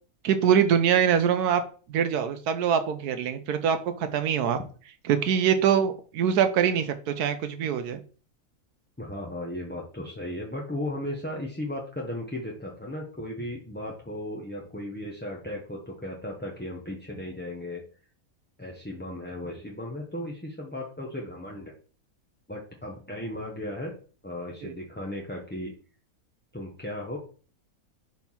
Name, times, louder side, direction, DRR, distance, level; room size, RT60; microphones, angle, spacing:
voice 1, 0.2-1.6 1.9-4.6 5.1-8.0 24.6-24.7, right 8 dB, 85° right, 9 dB, 1.2 m, -24 dB
voice 2, 9.0-17.8 18.6-21.7 22.5-23.9 24.2-25.7 26.5-27.2, left 1 dB, 10° left, -2 dB, 0.7 m, -36 dB
4.6 x 4.5 x 5.5 m, 0.39 s
omnidirectional pair, 1.6 m